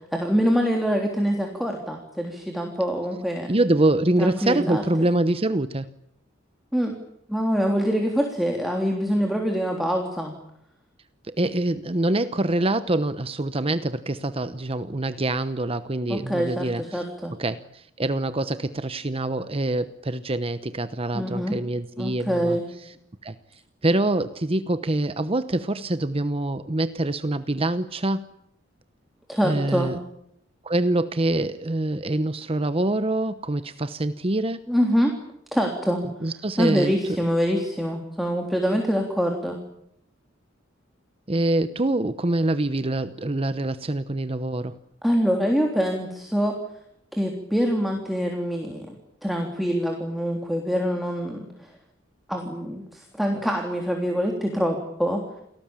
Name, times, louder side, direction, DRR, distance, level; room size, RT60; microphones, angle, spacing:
voice 1, 0.1-3.5 4.2-5.1 6.7-6.9 7.3-10.3 16.1-17.4 21.1-21.6 22.0-22.7 29.3-29.9 34.7-35.1 35.5-36.0 36.6-39.6 45.0-46.5 47.1-48.9 49.2-51.7 52.3-55.2, equal, ahead, 1 dB, 3.4 m, -25 dB
voice 2, 3.5-5.9 11.2-17.0 17.4-22.9 23.2-23.3 23.8-28.3 29.4-30.0 30.6-34.6 36.2-36.9 41.3-44.8, right 2 dB, 30° right, 12 dB, 0.9 m, -25 dB
29.5 x 18.5 x 8.9 m, 0.75 s
head